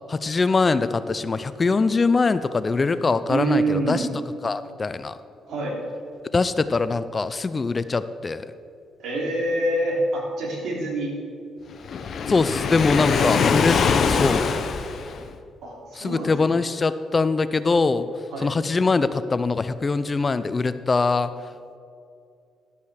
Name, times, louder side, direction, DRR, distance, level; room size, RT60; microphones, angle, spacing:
voice 1, 0.1-4.1 4.4-5.1 6.3-8.5 12.3-13.8 14.1-14.5 16.0-18.1 18.4-21.3, left 4 dB, 30° left, 13 dB, 0.4 m, -22 dB
voice 2, 2.9-4.0 5.5-5.8 9.0-11.1 13.1-13.4 15.6-16.5 18.3-18.5, right 2 dB, 70° right, -2 dB, 3.2 m, -26 dB
Waves surf, 11.8-15.3, left 5 dB, 55° left, 0.7 m, -23 dB
12.0 x 8.4 x 4.9 m, 2.4 s
cardioid pair, 90°, 0 cm